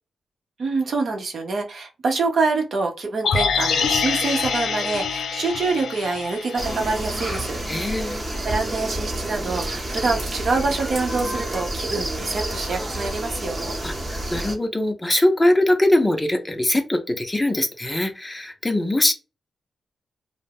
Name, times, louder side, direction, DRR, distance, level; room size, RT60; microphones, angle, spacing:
voice 1, 0.6-7.6 8.0-13.7, right 3 dB, 65° right, 3 dB, 0.7 m, -26 dB
sound 1, 3.2-7.4 7.8-7.9, left 5 dB, 80° left, 0.4 m, -25 dB
sound 2, 6.6-14.5, right 1 dB, 30° right, 0.8 m, -29 dB
voice 2, 7.7-8.2 13.8-19.1, left 1 dB, 15° left, 6 dB, 0.5 m, -22 dB
2.3 x 2.0 x 3.4 m, 0.29 s
cardioid pair, 90°, 0 cm